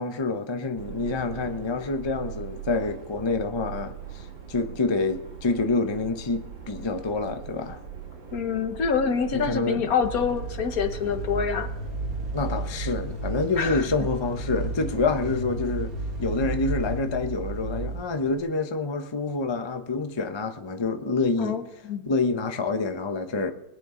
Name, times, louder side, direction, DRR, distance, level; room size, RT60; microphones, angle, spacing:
voice 1, 0.0-7.8 9.3-9.8 12.3-15.9 16.2-21.6 22.1-23.5, left 3 dB, 40° left, 0.4 m, -27 dB
Subway metro underground, 0.7-16.9, right 8 dB, 85° right, 2.7 m, -42 dB
voice 2, 8.3-11.7 13.6-13.9 21.4-22.1, left 6 dB, 55° left, 1.4 m, -26 dB
sound 1, 10.0-18.4, right 2 dB, 50° right, 2.0 m, -33 dB
20.5 x 9.8 x 3.8 m
omnidirectional pair, 2.0 m